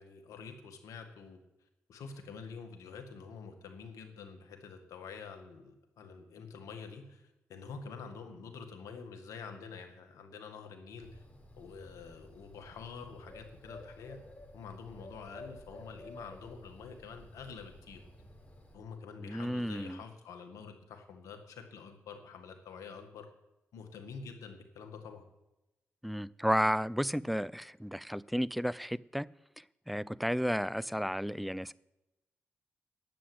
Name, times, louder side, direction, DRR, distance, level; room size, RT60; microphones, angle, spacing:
voice 1, 0.0-1.4 1.9-11.2 11.6-14.2 14.5-18.0 18.7-23.3 23.7-25.2, left 5 dB, 85° left, 1.9 m, -47 dB
Bird, 11.0-18.7, left 1 dB, 25° left, 5.3 m, -53 dB
voice 2, 19.2-20.0 26.0-29.3 29.6-31.7, equal, ahead, 0.5 m, -33 dB
10.0 x 7.7 x 9.7 m
supercardioid pair, 45°, 5 cm